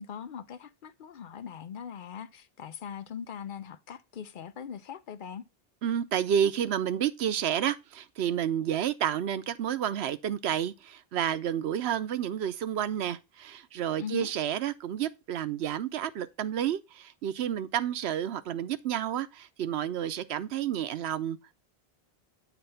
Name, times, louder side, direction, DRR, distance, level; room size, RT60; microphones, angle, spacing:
voice 1, 0.0-5.5 14.0-14.3, left 7 dB, 60° left, 0.6 m, -41 dB
voice 2, 5.8-21.6, right 9 dB, 90° right, 0.9 m, -30 dB
8.1 x 3.4 x 5.5 m
omnidirectional pair, 1.1 m